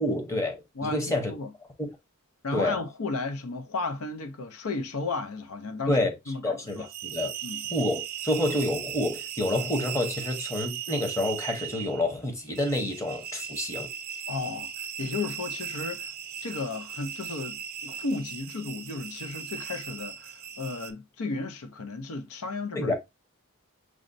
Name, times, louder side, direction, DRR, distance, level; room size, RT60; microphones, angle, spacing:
voice 1, 0.0-1.3 1.8-1.9 2.5-2.7 5.9-6.1 6.4-6.8 7.0-7.3 7.7-13.9 22.8-22.9, left 1 dB, 15° left, 0.7 m, -28 dB
voice 2, 0.8-1.5 2.4-6.9 7.4-7.6 14.3-16.1 16.4-22.9, left 3 dB, 90° left, 0.6 m, -34 dB
sound 1, 6.7-20.9, right 8 dB, 45° right, 0.4 m, -38 dB
6.2 x 2.1 x 2.5 m
head